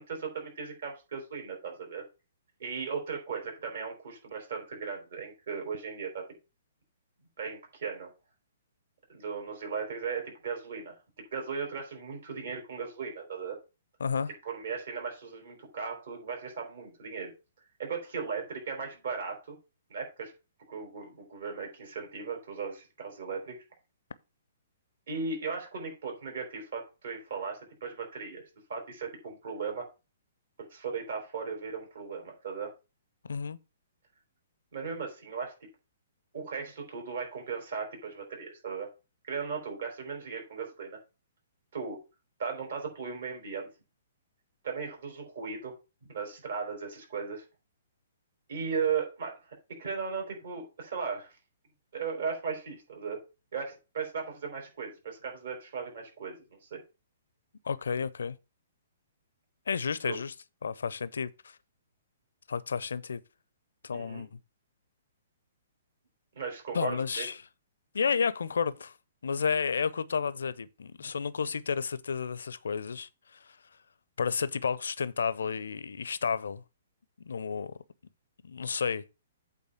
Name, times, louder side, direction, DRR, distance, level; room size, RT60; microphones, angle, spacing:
voice 1, 0.0-2.0 2.6-6.2 7.4-8.1 9.1-13.6 14.4-17.3 17.8-19.6 19.9-20.3 20.7-23.6 25.1-29.9 30.6-32.7 34.7-35.5 36.3-38.9 39.2-41.0 41.7-42.0 42.4-43.7 44.6-45.7 46.1-47.4 48.5-51.4 51.9-53.2 53.5-56.8 60.0-60.2 63.9-64.2 66.3-67.3 71.0-71.1, right 5 dB, 60° right, 4.5 m, -37 dB
voice 2, 14.0-14.3 33.2-33.6 57.6-58.4 59.7-60.3 60.6-61.6 62.5-63.2 63.8-64.3 66.7-67.4 67.9-68.9 69.2-73.6 74.2-76.6 77.2-77.7 78.4-79.0, left 6 dB, 70° left, 0.6 m, -31 dB
8.4 x 4.1 x 6.3 m
figure-of-eight pair, 120°, 0 cm